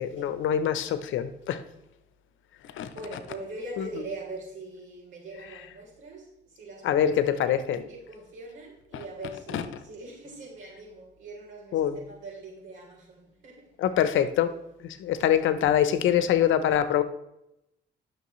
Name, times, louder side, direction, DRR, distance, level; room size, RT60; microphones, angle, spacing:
voice 1, 0.0-1.6 2.6-2.9 3.8-3.9 6.8-7.8 8.9-9.0 9.5-9.6 11.7-12.0 13.8-14.5 14.8-17.0, left 10 dB, 75° left, 0.8 m, -24 dB
voice 2, 2.9-7.6 7.9-13.7, right 2 dB, 75° right, 3.4 m, -42 dB
11.0 x 6.4 x 3.1 m
cardioid pair, 90°, 20 cm